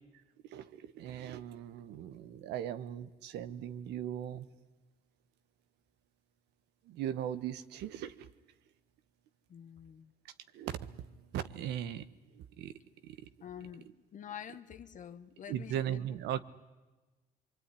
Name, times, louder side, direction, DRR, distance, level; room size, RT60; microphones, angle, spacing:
voice 1, 0.5-4.4 6.9-8.3 10.5-12.0 12.3-12.7 13.0-13.2 15.5-16.4, right 10 dB, 85° right, 1.4 m, -38 dB
voice 2, 9.5-10.1 13.4-16.0, left 9 dB, 50° left, 1.4 m, -47 dB
25.0 x 24.0 x 10.0 m
cardioid pair, 110°, 17 cm